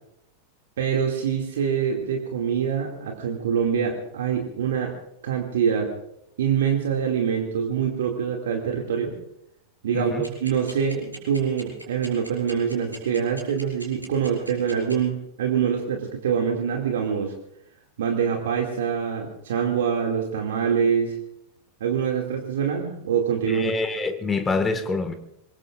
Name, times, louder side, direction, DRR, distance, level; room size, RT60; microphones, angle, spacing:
voice 1, 0.8-4.9 5.2-5.9 6.4-9.2 9.8-17.3 18.0-21.2 21.8-23.7, right 7 dB, 60° right, 2.4 m, -25 dB
voice 2, 9.9-10.3 23.5-25.1, left 3 dB, 15° left, 1.8 m, -26 dB
sound 1, 10.2-14.9, right 1 dB, 85° right, 5.4 m, -40 dB
25.5 x 22.0 x 2.5 m
figure-of-eight pair, 90°, 0 cm